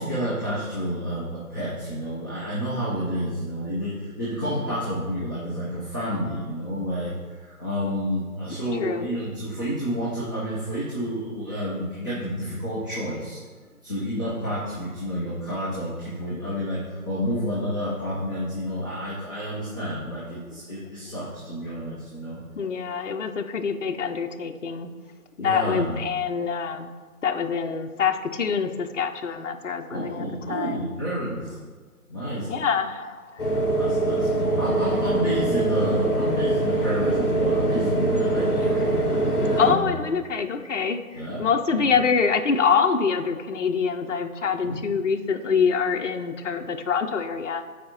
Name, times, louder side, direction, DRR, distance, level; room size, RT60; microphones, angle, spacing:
voice 1, 0.0-13.4 13.8-22.4 25.4-26.0 29.9-31.6 32.1-32.5 33.8-40.0 41.1-41.4 41.7-41.9 44.7-44.8, equal, 15° right, -12 dB, 0.8 m, -30 dB
voice 2, 4.4-4.8 8.8-9.1 22.6-24.9 25.4-26.9 27.2-30.9 32.5-33.4 39.6-47.6, left 6 dB, 55° left, 5 dB, 0.6 m, -25 dB
sound 1, 33.4-39.7, right 2 dB, 35° left, 1.2 m, -23 dB
14.0 x 4.9 x 2.9 m, 1.5 s
figure-of-eight pair, 155°, 44 cm